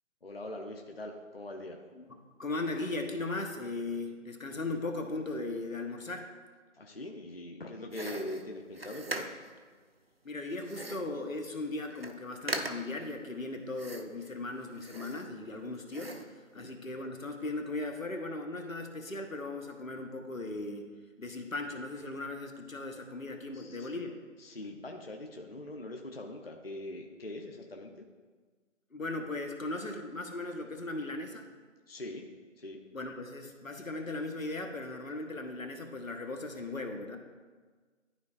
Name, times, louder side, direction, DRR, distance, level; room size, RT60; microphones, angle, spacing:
voice 1, 0.2-1.8 6.7-9.3 16.5-16.7 23.5-23.9 24.4-28.1 31.9-32.3 32.6-32.8, left 1 dB, 50° left, 2 dB, 0.7 m, -42 dB
voice 2, 1.9-6.3 10.2-20.9 21.2-24.2 28.9-31.5 32.9-37.2, left 2 dB, 85° left, 5 dB, 1.2 m, -38 dB
sound 1, 7.9-9.6 10.6-11.2 11.6-11.7 11.9-12.2 12.5-13.0 13.8-14.3 14.7-15.6 15.9-16.4, right 2 dB, 50° right, 0.5 m, -40 dB
12.0 x 4.3 x 2.4 m, 1.5 s
figure-of-eight pair, 170°, 39 cm